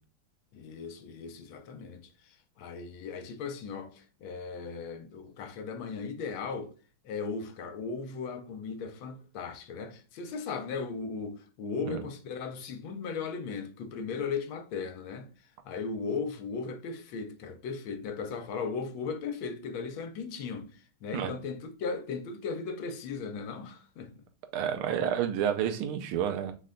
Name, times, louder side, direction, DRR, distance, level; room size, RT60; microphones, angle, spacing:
voice 1, 0.5-6.7 7.0-15.3 15.7-20.7 21.0-24.1, left 5 dB, 75° left, 1.4 m, -37 dB
voice 2, 24.5-26.5, right 9 dB, 85° right, 1.6 m, -29 dB
4.0 x 3.3 x 3.7 m
omnidirectional pair, 2.4 m